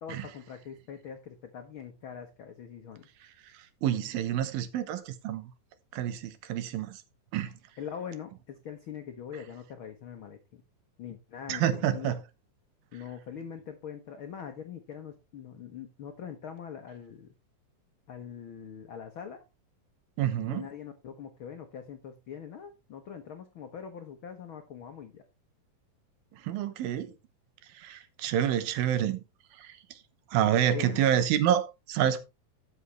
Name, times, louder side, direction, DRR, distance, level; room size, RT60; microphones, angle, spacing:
voice 1, 0.0-3.1 7.8-10.6 11.0-12.1 12.9-17.3 18.1-19.5 20.5-25.2 30.7-31.1, left 8 dB, 90° left, 1.1 m, -43 dB
voice 2, 3.8-5.5 5.9-7.0 7.3-7.5 11.5-12.2 20.2-20.7 26.4-27.1 27.8-29.2 29.6-29.7 30.3-32.2, right 10 dB, 85° right, 2.8 m, -28 dB
12.5 x 7.3 x 3.3 m
omnidirectional pair, 4.1 m